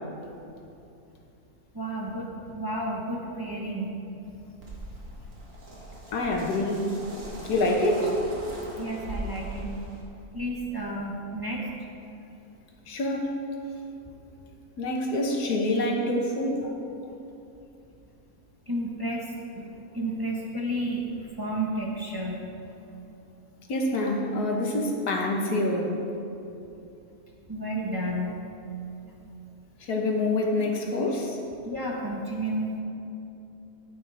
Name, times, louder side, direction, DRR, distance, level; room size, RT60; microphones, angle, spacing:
voice 1, 1.7-3.9 8.8-9.8 10.3-11.6 18.7-19.7 19.9-22.5 27.5-28.4 31.6-32.7, right 1 dB, 15° right, -3 dB, 1.0 m, -31 dB
sound 1, 4.6-10.0, right 1 dB, 60° right, 1.9 m, -40 dB
voice 2, 6.1-6.8 7.5-8.1 12.9-13.3 14.8-16.7 23.7-26.0 29.9-31.4, left 1 dB, 85° left, 1 dB, 1.7 m, -26 dB
13.0 x 9.0 x 3.4 m, 2.8 s
omnidirectional pair, 1.6 m